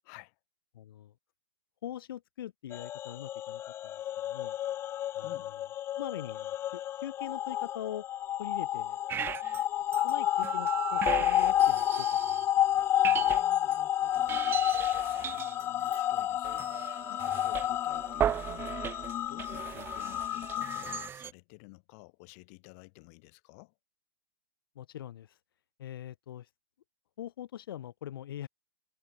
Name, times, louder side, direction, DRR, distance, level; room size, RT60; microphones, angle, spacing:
voice 1, 0.0-0.4 5.2-5.6 13.0-18.7 19.3-23.8, left 32 dB, 40° left, 5.4 m, -53 dB
voice 2, 0.7-1.1 1.8-3.9 4.2-4.5 5.1-5.3 5.9-8.1 8.4-9.0 10.0-12.5 24.7-25.4 25.8-26.5 27.2-28.5, left 11 dB, 70° left, 1.8 m, -42 dB
sound 1, 2.7-21.1, left 12 dB, 20° left, 0.5 m, -30 dB
sound 2, 9.1-9.6 9.9-12.5 12.8-13.8 14.1-21.3, right 9 dB, 20° right, 1.7 m, -37 dB
hypercardioid pair, 150°, 12 cm